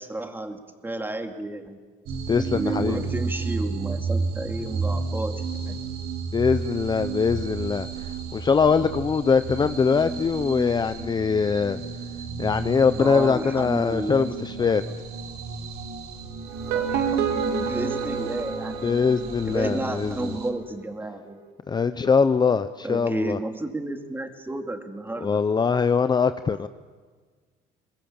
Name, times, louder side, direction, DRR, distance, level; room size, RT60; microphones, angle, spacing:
voice 1, 0.0-1.8 2.5-5.3 5.7-5.8 12.9-15.0 16.6-18.8 19.4-21.4 22.8-25.4, right 2 dB, 10° right, 5 dB, 2.4 m, -32 dB
sound 1, 2.1-20.5, right 4 dB, 70° right, 2.9 m, -32 dB
voice 2, 2.3-3.1 6.3-7.9 8.3-11.8 12.4-14.8 18.8-20.4 21.7-23.4 25.2-26.7, left 5 dB, 25° left, 11 dB, 0.7 m, -22 dB
sound 2, 16.5-19.6, right 6 dB, 85° right, 2.8 m, -28 dB
22.5 x 20.0 x 8.8 m, 1.5 s
cardioid pair, 110°, 17 cm